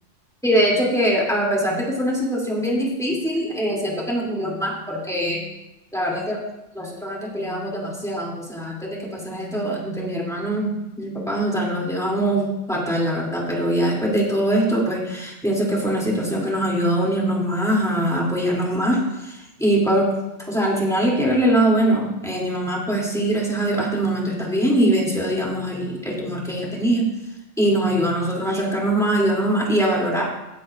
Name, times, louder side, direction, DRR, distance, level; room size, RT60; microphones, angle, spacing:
voice 1, 0.4-5.4 5.9-6.4 6.7-20.1 20.5-27.1 27.6-30.2, right 1 dB, ahead, -4 dB, 2.9 m, -22 dB
18.0 x 8.6 x 2.6 m, 0.96 s
omnidirectional pair, 1.3 m